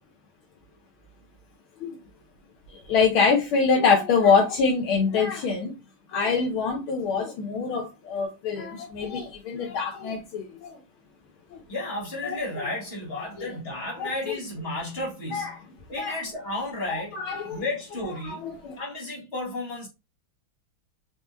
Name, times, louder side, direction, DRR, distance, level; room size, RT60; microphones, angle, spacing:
voice 1, 2.7-5.7 6.1-10.7 11.5-11.6 12.2-12.4 13.1-13.5 14.0-14.4 15.3-15.5 16.0-16.2 16.9-17.6 18.2-18.8, left 5 dB, 85° left, 1.7 m, -25 dB
voice 2, 11.7-15.6 15.9-19.9, left 2 dB, 30° left, 1.9 m, -33 dB
4.6 x 3.7 x 2.6 m
omnidirectional pair, 2.2 m